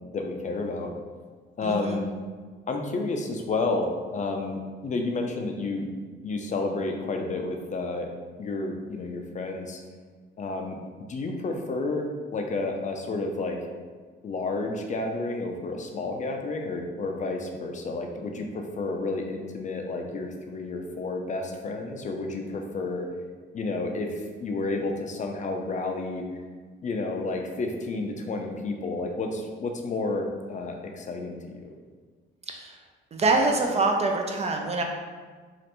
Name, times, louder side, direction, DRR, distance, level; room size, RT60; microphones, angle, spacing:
voice 1, 0.1-0.9 1.6-2.1 2.7-5.9 6.2-8.1 8.4-9.8 10.4-10.8 11.1-13.7 14.2-23.1 23.5-26.2 26.8-31.7, left 3 dB, 40° left, 3 dB, 0.4 m, -31 dB
voice 2, 1.6-2.0 32.5-32.8 33.1-34.8, right 3 dB, 35° right, 2 dB, 0.4 m, -25 dB
3.1 x 2.5 x 2.9 m, 1.5 s
cardioid pair, 90°, 20 cm